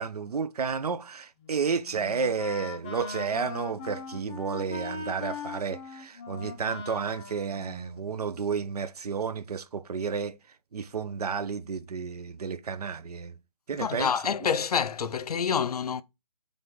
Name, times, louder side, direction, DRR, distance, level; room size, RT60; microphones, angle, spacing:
voice 1, 0.0-10.4 10.7-13.3 13.7-14.1, right 5 dB, 80° right, 0.6 m, -31 dB
Wind instrument woodwind instrument, 1.4-8.5, left 4 dB, 15° left, 0.5 m, -40 dB
voice 2, 13.7-16.0, left 7 dB, 75° left, 0.5 m, -27 dB
3.8 x 3.4 x 3.7 m
hypercardioid pair, 160°, 20 cm